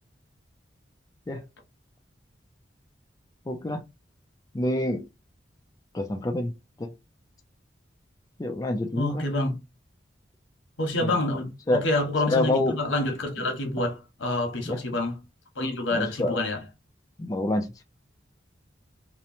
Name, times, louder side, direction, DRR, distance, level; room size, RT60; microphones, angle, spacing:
voice 1, 3.5-3.8 4.5-5.0 5.9-6.5 6.8-6.9 8.4-9.2 11.0-11.2 11.7-11.8 12.3-12.8 14.7-14.8 15.9-16.4 17.2-17.8, left 1 dB, 20° left, 0.3 m, -27 dB
voice 2, 9.0-9.6 10.8-15.2 15.5-16.6, left 2 dB, 90° left, 0.9 m, -27 dB
2.9 x 2.1 x 2.6 m
head